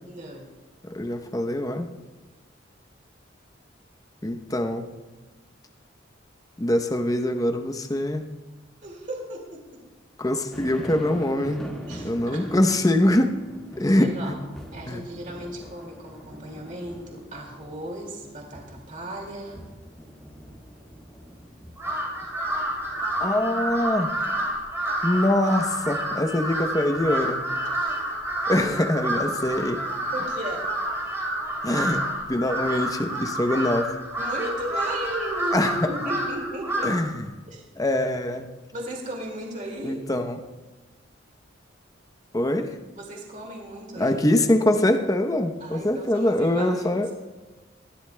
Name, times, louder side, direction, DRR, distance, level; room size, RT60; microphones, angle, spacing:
voice 1, 0.1-0.5 8.8-9.8 11.9-12.4 14.0-14.3 14.7-19.6 28.6-28.7 30.1-30.7 34.2-37.0 37.5-37.6 38.7-40.0 43.0-44.3 45.6-47.0, right 1 dB, 40° right, -1 dB, 2.2 m, -35 dB
voice 2, 0.8-1.9 4.2-4.9 6.6-8.3 10.2-11.7 12.0-13.3 13.8-14.3 14.9-15.0 23.2-24.1 25.0-27.4 28.5-29.8 31.6-34.0 35.5-35.9 36.8-37.3 37.8-38.5 39.8-40.4 42.3-42.8 44.0-47.1, left 1 dB, 20° left, 6 dB, 0.7 m, -24 dB
sound 1, 10.5-23.2, equal, ahead, 1.7 m, -43 dB
Crow, 21.8-37.1, right 1 dB, 15° right, 2.8 m, -29 dB
20.5 x 14.5 x 2.2 m, 1.2 s
head